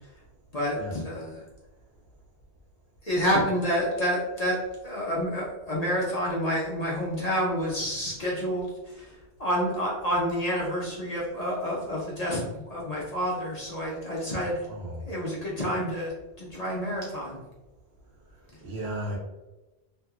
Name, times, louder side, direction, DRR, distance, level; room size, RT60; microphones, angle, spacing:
voice 1, 0.5-1.5 3.0-4.6 4.8-14.7 15.1-17.4, equal, 45° left, -4 dB, 0.6 m, -29 dB
voice 2, 14.7-15.1 18.6-19.2, right 1 dB, 75° right, -3 dB, 1.1 m, -34 dB
2.8 x 2.7 x 2.3 m, 1.1 s
omnidirectional pair, 1.1 m